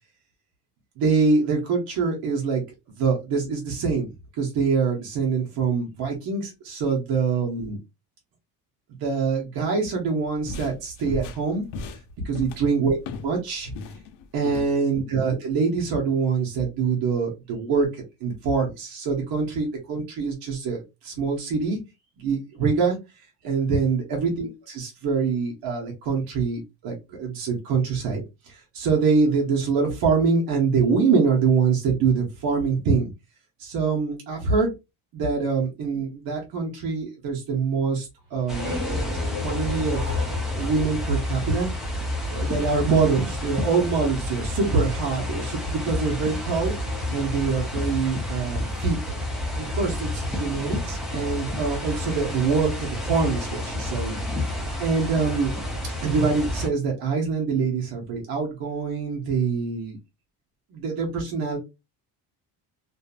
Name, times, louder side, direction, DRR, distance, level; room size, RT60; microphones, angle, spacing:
voice 1, 1.0-2.6 3.0-4.1 4.4-7.8 9.0-11.6 12.2-13.0 13.2-13.7 14.3-21.8 22.2-23.0 23.4-28.2 28.5-33.1 33.6-34.7 35.1-38.8 39.4-40.0 40.4-41.7 42.3-46.7 47.1-49.0 49.6-54.2 54.8-55.5 56.0-60.0 60.7-61.6, right 5 dB, 60° right, 0 dB, 1.0 m, -24 dB
sound 1, 10.2-13.4 13.7-14.7, left 3 dB, 85° left, 0.7 m, -36 dB
sound 2, 38.2-41.8, left 1 dB, 30° right, 1.4 m, -35 dB
sound 3, 38.5-56.7, left 1 dB, ahead, 0.6 m, -30 dB
2.7 x 2.5 x 2.4 m, 0.24 s
cardioid pair, 160°, 41 cm